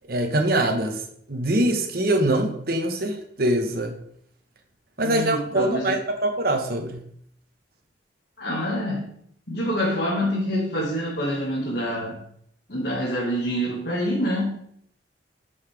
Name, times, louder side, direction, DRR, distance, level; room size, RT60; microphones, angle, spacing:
voice 1, 0.1-1.0 1.3-3.9 5.0-7.0, right 1 dB, 55° right, 4 dB, 1.2 m, -23 dB
voice 2, 5.0-6.0 8.4-9.1 9.5-12.2 12.7-14.6, equal, 65° left, -5 dB, 1.9 m, -26 dB
10.5 x 5.7 x 3.4 m, 0.67 s
head